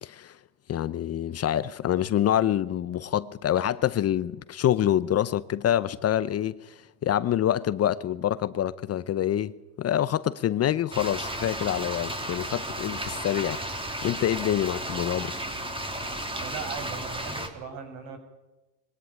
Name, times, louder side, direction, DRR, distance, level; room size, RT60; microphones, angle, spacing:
voice 1, 0.0-0.4 0.7-6.7 7.0-13.6 14.0-15.3, left 11 dB, 30° left, 0.7 m, -26 dB
sound 1, 10.9-17.5, right 1 dB, 10° right, 3.6 m, -34 dB
voice 2, 16.4-18.2, right 6 dB, 65° right, 7.8 m, -38 dB
22.5 x 17.0 x 8.9 m
supercardioid pair, 110°, 48 cm